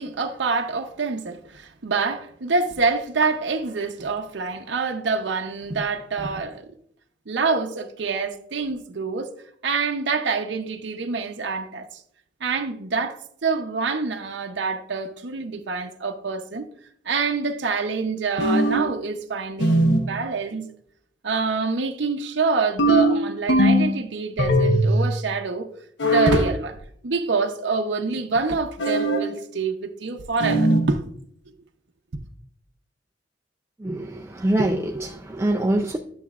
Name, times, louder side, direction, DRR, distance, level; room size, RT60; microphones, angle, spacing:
voice 1, 0.0-6.7 7.3-9.3 9.6-11.9 12.4-16.7 17.1-20.7 21.2-25.7 26.0-26.8 27.0-31.0, right 4 dB, 70° right, 0.7 m, -26 dB
sound 1, 18.4-19.0 19.6-20.1 22.8-24.0 24.4-25.0 26.0-26.5 28.8-29.3 30.4-30.9, right 1 dB, 75° left, 1.0 m, -19 dB
voice 2, 33.8-36.0, right 1 dB, 15° right, 0.4 m, -24 dB
11.5 x 7.0 x 2.4 m
head